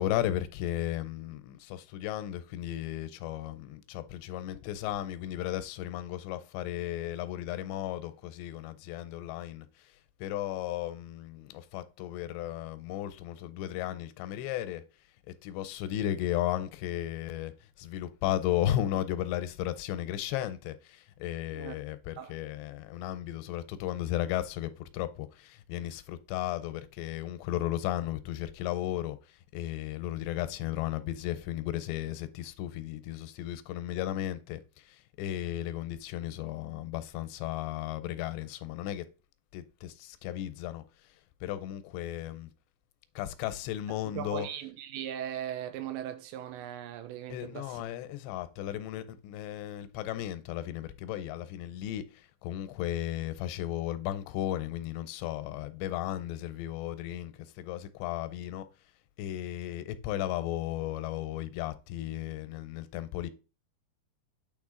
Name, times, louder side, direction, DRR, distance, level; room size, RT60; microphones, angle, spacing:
voice 1, 0.0-9.9 10.2-14.8 15.4-17.5 17.8-39.1 39.5-40.8 41.4-42.5 43.2-44.5 47.3-58.7 59.2-63.3, left 12 dB, 85° left, 2.9 m, -35 dB
voice 2, 44.1-47.8, right 10 dB, 90° right, 3.2 m, -39 dB
8.9 x 4.5 x 3.7 m
omnidirectional pair, 5.0 m